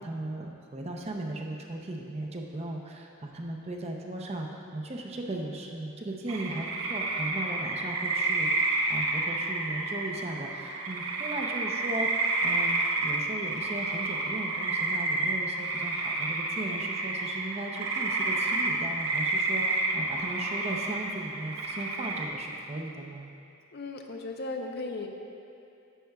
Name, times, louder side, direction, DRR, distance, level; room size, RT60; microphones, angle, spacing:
voice 1, 0.0-23.3, right 1 dB, 30° right, 1 dB, 0.6 m, -37 dB
sound 1, 6.3-22.3, right 2 dB, 85° right, 0.8 m, -30 dB
voice 2, 23.7-25.1, left 3 dB, 50° left, 3 dB, 0.5 m, -36 dB
10.0 x 7.6 x 2.3 m, 2.6 s
head